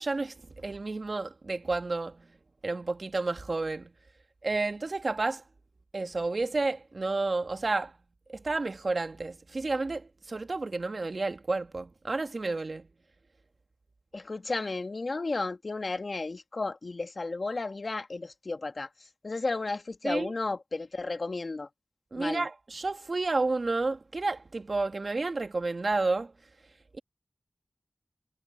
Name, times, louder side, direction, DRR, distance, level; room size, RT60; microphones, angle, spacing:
voice 1, 0.0-2.2 2.6-3.9 4.4-5.4 5.9-7.9 8.3-12.9 20.0-20.3 22.1-26.3 26.9-27.0, right 3 dB, 60° right, 1.7 m, -31 dB
voice 2, 14.1-18.9 19.2-21.7 22.2-22.5, left 3 dB, 60° left, 1.9 m, -33 dB
cardioid pair, 45°, 0 cm